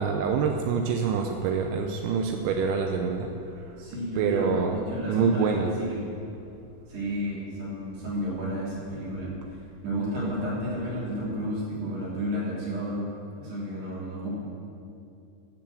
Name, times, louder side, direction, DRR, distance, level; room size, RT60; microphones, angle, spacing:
voice 1, 0.0-3.6 4.2-4.8 5.1-5.7, right 6 dB, 80° right, 3 dB, 2.9 m, -26 dB
voice 2, 3.8-6.0 6.9-9.3 9.8-13.1 13.4-14.3, equal, 60° right, -7 dB, 5.1 m, -31 dB
14.5 x 7.3 x 7.5 m, 2.6 s
omnidirectional pair, 5.5 m